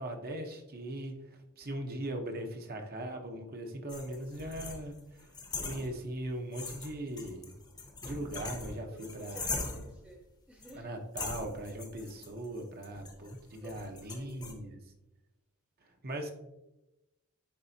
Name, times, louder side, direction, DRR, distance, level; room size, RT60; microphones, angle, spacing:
voice 1, 0.0-5.3 5.6-7.5 8.0-9.6 10.7-14.8 15.8-16.3, right 1 dB, 45° right, 4 dB, 0.9 m, -40 dB
sound 1, 3.9-6.3 6.5-10.0 10.6-10.8 11.2-14.5, left 3 dB, 20° left, 0.8 m, -41 dB
voice 2, 8.9-10.9 13.1-14.7, right 1 dB, 5° right, 1 dB, 0.5 m, -53 dB
10.0 x 4.0 x 2.7 m, 0.94 s
head